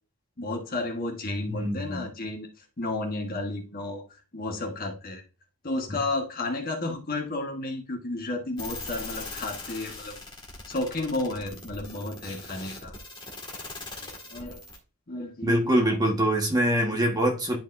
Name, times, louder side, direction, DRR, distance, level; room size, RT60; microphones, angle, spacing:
voice 1, 0.4-2.5 2.8-4.0 4.3-5.2 5.6-10.2 10.7-12.9 14.0-14.6 15.1-15.5 15.8-16.0, left 2 dB, 40° left, 1.5 m, -32 dB
voice 2, 1.5-2.1 15.4-17.6, right 1 dB, 15° right, 1.4 m, -24 dB
sound 1, 8.6-14.8, left 3 dB, 20° left, 1.9 m, -40 dB
10.5 x 5.2 x 2.6 m
head